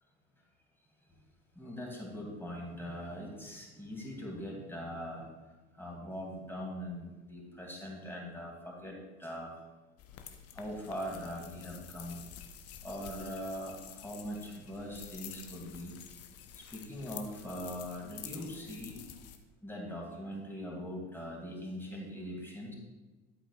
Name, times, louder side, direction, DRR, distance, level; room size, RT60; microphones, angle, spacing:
voice 1, 1.6-5.3 5.8-9.5 10.5-12.2 12.8-15.9 16.7-19.0 19.6-22.7, equal, 5° left, -2 dB, 2.6 m, -41 dB
sound 1, 10.0-19.4, left 9 dB, 40° left, 0.9 m, -49 dB
11.5 x 8.3 x 2.4 m, 1.2 s
figure-of-eight pair, 65°, 37 cm